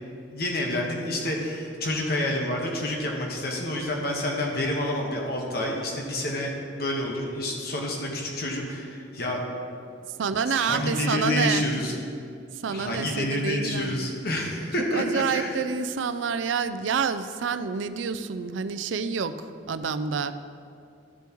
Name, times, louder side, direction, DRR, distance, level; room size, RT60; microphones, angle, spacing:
voice 1, 0.3-9.4 10.5-11.9 12.7-15.6, left 1 dB, 55° left, 0 dB, 1.3 m, -28 dB
voice 2, 10.2-11.6 12.5-14.1 14.9-20.3, right 6 dB, 90° right, 12 dB, 0.4 m, -28 dB
13.5 x 7.0 x 3.0 m, 2.5 s
head